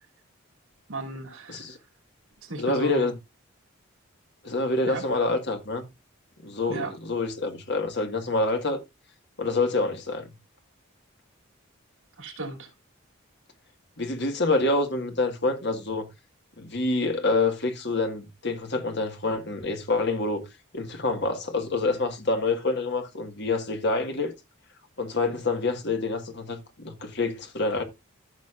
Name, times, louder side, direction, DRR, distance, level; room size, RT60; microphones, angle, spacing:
voice 1, 0.9-1.7 2.4-3.1 4.8-5.0 6.7-6.9 12.2-12.7, right 2 dB, 80° right, 2.9 m, -35 dB
voice 2, 2.6-3.1 4.4-5.8 6.4-8.8 9.4-10.3 14.0-16.1 16.6-20.5 20.7-24.3 25.0-27.8, left 3 dB, 55° left, 1.7 m, -27 dB
14.5 x 6.4 x 2.5 m
head